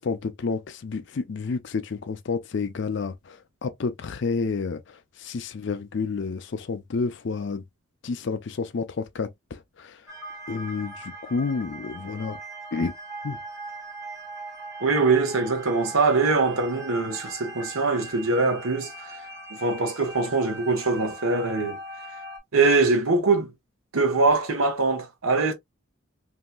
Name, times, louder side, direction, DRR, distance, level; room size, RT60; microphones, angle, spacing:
voice 1, 0.0-7.6 8.0-10.0 10.5-12.4 12.7-13.0 13.2-13.4, left 4 dB, 60° left, 0.5 m, -30 dB
sound 1, 10.1-22.4, right 2 dB, 15° right, 1.0 m, -40 dB
voice 2, 14.8-19.2 19.5-21.8 22.5-23.5 23.9-25.5, right 3 dB, 85° right, 0.9 m, -23 dB
3.0 x 2.7 x 2.2 m
head